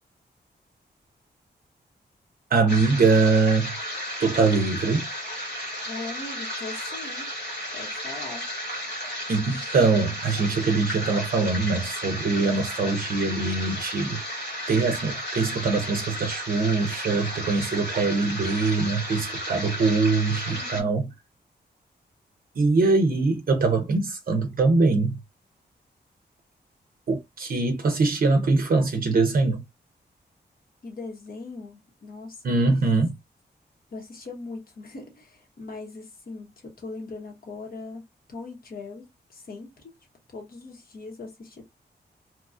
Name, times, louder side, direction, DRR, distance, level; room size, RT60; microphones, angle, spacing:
voice 1, 2.5-3.7 4.2-5.1 9.3-14.2 14.7-21.1 22.6-25.2 27.1-29.6 32.4-33.1, right 3 dB, 55° right, 0.5 m, -23 dB
sound 1, 2.7-20.8, equal, 70° left, 1.4 m, -34 dB
voice 2, 5.8-7.3 7.7-8.5 20.5-21.1 30.8-32.6 33.9-39.9 40.3-41.7, left 3 dB, 55° left, 1.1 m, -40 dB
2.8 x 2.3 x 2.4 m
wide cardioid pair, 90°, 18 cm